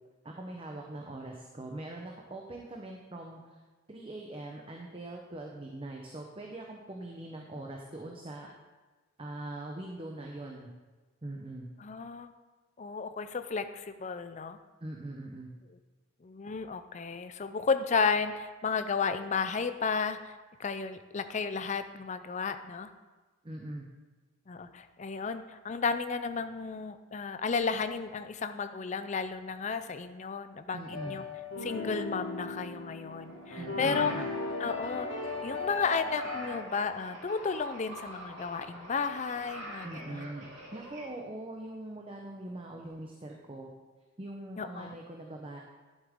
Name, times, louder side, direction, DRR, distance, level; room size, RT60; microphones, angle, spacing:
voice 1, 0.2-3.6 3.9-8.5 9.2-10.7 11.2-11.7 14.8-15.5 23.4-23.9 30.7-31.2 33.5-34.2 39.8-43.7 44.2-45.6, right 1 dB, 25° right, 0 dB, 0.7 m, -42 dB
voice 2, 11.8-12.3 12.8-14.6 16.2-22.9 24.5-31.2 31.6-34.2 34.6-35.1 35.4-40.3 44.6-44.9, left 5 dB, 35° left, 10 dB, 0.4 m, -33 dB
sound 1, 30.8-36.5, left 3 dB, 70° left, 2.0 m, -37 dB
sound 2, 33.0-41.1, right 1 dB, 60° right, 3.4 m, -46 dB
11.5 x 7.4 x 3.6 m, 1.2 s
head